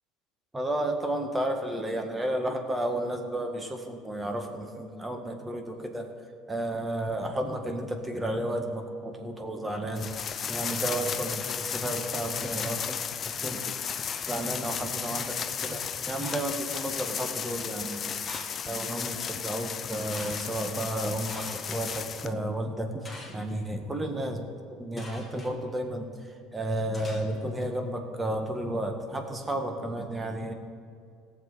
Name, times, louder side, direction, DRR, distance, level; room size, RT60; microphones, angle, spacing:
voice 1, 0.5-6.1 6.5-10.1 10.5-13.0 13.2-14.0 14.2-18.1 18.4-24.4 24.7-30.5, right 1 dB, 15° right, 4 dB, 1.7 m, -32 dB
sound 1, 10.0-22.3, left 7 dB, 40° left, 0.6 m, -34 dB
sound 2, 14.1-14.9 16.2-16.8 18.3-18.8 20.1-20.5 21.3-22.0 23.0-23.5 25.0-25.5 26.9-27.7, left 2 dB, 15° left, 2.5 m, -45 dB
17.5 x 7.5 x 4.2 m, 2.4 s
hypercardioid pair, 75°, 0 cm